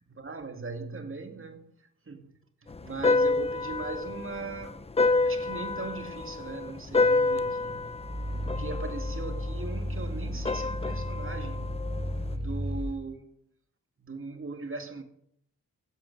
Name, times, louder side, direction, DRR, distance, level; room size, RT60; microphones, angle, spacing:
voice 1, 0.2-1.7 2.1-2.3 2.8-11.8 12.3-13.3 14.0-15.0, right 3 dB, 35° right, 2.1 m, -39 dB
sound 1, 2.7-12.3, left 3 dB, 15° left, 0.6 m, -29 dB
Growling, 8.0-12.9, equal, 15° right, 2.8 m, -34 dB
16.0 x 8.0 x 5.3 m
supercardioid pair, 40°, 35 cm